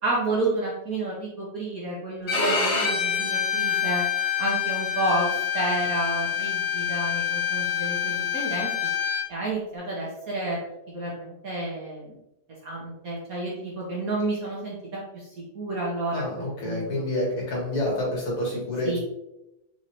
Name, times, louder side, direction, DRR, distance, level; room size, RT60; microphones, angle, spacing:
voice 1, 0.0-4.0 4.4-8.7 9.3-10.6 10.9-12.2 12.6-17.0 18.8-19.0, right 2 dB, 60° right, -4 dB, 0.9 m, -30 dB
Bowed string instrument, 2.3-9.2, left 8 dB, 55° left, 1.6 m, -26 dB
voice 2, 16.1-19.0, left 1 dB, 85° left, -5 dB, 2.6 m, -28 dB
5.0 x 3.3 x 2.8 m, 0.90 s
omnidirectional pair, 2.4 m